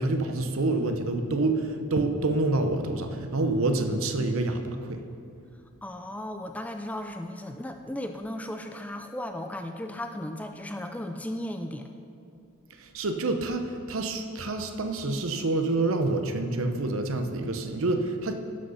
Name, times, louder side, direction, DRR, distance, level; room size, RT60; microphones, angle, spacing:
voice 1, 0.0-5.0 12.8-18.3, right 2 dB, 70° right, 6 dB, 0.8 m, -27 dB
voice 2, 5.8-11.9, left 1 dB, 5° left, 6 dB, 0.3 m, -36 dB
11.5 x 6.4 x 5.6 m, 2.5 s
head